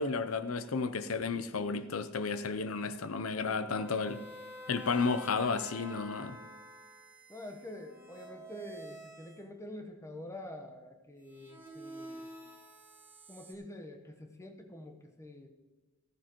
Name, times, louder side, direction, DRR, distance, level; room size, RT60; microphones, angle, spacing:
voice 1, 0.0-4.2 4.7-6.4, left 4 dB, 75° left, 12 dB, 0.7 m, -32 dB
voice 2, 3.5-3.9 7.3-12.3 13.3-15.5, left 1 dB, 15° left, 4 dB, 1.0 m, -47 dB
sound 1, 3.7-9.4 11.3-13.5, equal, 10° right, 2.9 m, -49 dB
14.5 x 14.0 x 3.1 m, 1.2 s
head